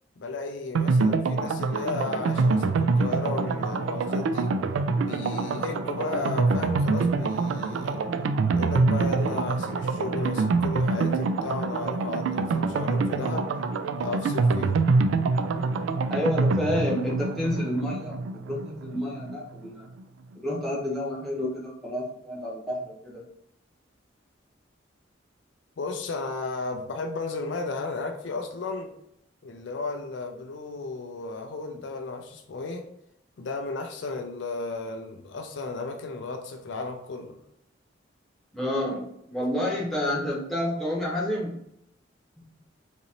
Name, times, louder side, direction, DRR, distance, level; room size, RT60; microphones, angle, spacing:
voice 1, 0.2-4.6 5.0-8.1 8.5-13.6 14.0-14.8 25.8-29.0 29.4-32.9 33.4-37.4, left 3 dB, 65° left, 0.4 m, -34 dB
sound 1, 0.7-19.4 19.6-19.7 20.0-20.1, right 3 dB, 80° right, 0.3 m, -25 dB
voice 2, 16.1-19.9 20.4-23.2 38.5-41.6 42.4-42.5, left 1 dB, ahead, 1.1 m, -29 dB
4.0 x 2.6 x 2.9 m
head